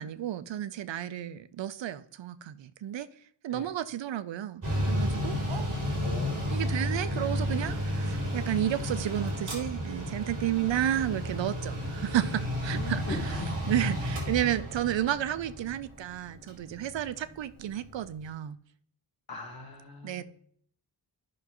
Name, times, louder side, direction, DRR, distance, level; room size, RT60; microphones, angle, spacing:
voice 1, 0.0-3.1 3.4-4.6 4.9-5.7 6.5-13.4 13.7-18.6 20.0-20.2, right 11 dB, 80° right, 0.6 m, -32 dB
Mechanical fan, 4.6-18.0, equal, 45° right, 3.5 m, -32 dB
voice 2, 6.0-6.5 12.7-13.6 19.3-20.2, left 3 dB, 55° left, 1.7 m, -40 dB
14.0 x 5.9 x 3.0 m
wide cardioid pair, 145°, 44 cm